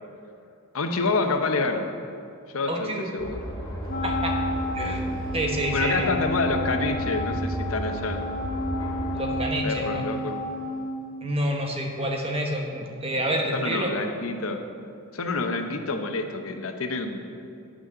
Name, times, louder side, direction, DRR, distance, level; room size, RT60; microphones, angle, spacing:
voice 1, 0.7-1.9 2.5-3.4 5.7-8.2 9.6-10.4 13.5-14.6 15.1-17.3, left 3 dB, 80° left, 5 dB, 0.8 m, -28 dB
voice 2, 2.7-3.1 4.0-4.3 4.7-6.1 9.1-10.0 11.2-13.9, right 1 dB, 30° right, 1 dB, 1.2 m, -28 dB
sound 1, 3.2-9.5, equal, 15° left, 2.0 m, -33 dB
Wind instrument woodwind instrument, 3.9-11.5, left 1 dB, 45° left, 0.8 m, -31 dB
9.7 x 6.1 x 6.7 m, 2.6 s
head